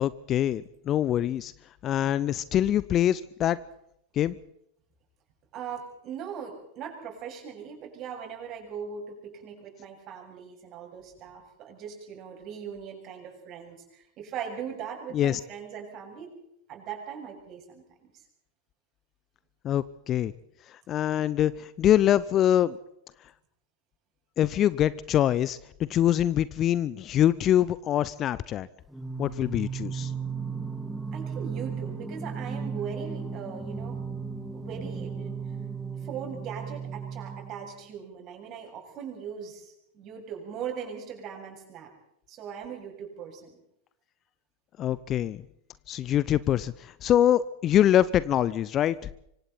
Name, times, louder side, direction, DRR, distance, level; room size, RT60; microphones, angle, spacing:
voice 1, 0.0-1.5 1.8-3.6 4.2-4.4 15.1-15.4 19.6-20.3 20.7-22.8 24.4-25.6 25.9-28.7 29.2-30.1 44.8-45.4 45.9-49.0, left 11 dB, 30° left, 19 dB, 0.7 m, -24 dB
voice 2, 5.5-16.4 16.7-18.2 31.1-34.0 34.5-35.6 35.9-41.9 42.3-43.6, right 7 dB, 35° right, 2 dB, 7.6 m, -40 dB
Singing, 28.9-37.8, right 5 dB, ahead, 2.0 m, -35 dB
25.5 x 25.0 x 4.2 m, 0.76 s
figure-of-eight pair, 90°, 0 cm